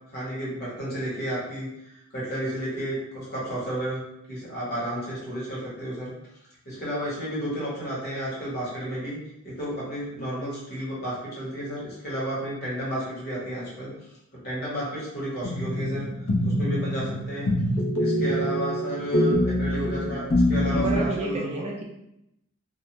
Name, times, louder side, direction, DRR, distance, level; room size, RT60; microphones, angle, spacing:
voice 1, 0.1-4.0 4.3-6.1 6.6-9.2 9.4-13.9 14.3-16.0 16.4-17.5 18.0-21.6, right 1 dB, 50° left, -6 dB, 1.1 m, -32 dB
sound 1, 15.4-21.0, equal, 65° left, 0.6 m, -25 dB
voice 2, 20.7-21.8, right 2 dB, 30° right, -1 dB, 0.3 m, -30 dB
2.3 x 2.2 x 2.9 m, 0.83 s
head